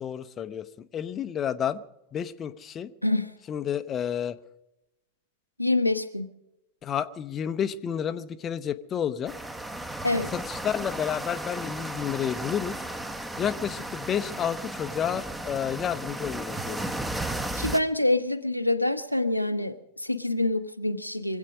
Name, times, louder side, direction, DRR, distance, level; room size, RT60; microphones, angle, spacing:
voice 1, 0.0-1.8 2.1-2.9 3.5-4.4 6.8-9.3 10.3-12.8 13.4-17.3, left 9 dB, 25° left, 0.6 m, -30 dB
voice 2, 5.6-6.3 10.0-10.3 17.5-21.4, left 2 dB, 90° left, 0.8 m, -26 dB
sound 1, 9.3-17.8, right 1 dB, 10° right, 0.9 m, -34 dB
24.0 x 8.3 x 6.2 m
figure-of-eight pair, 90°, 0 cm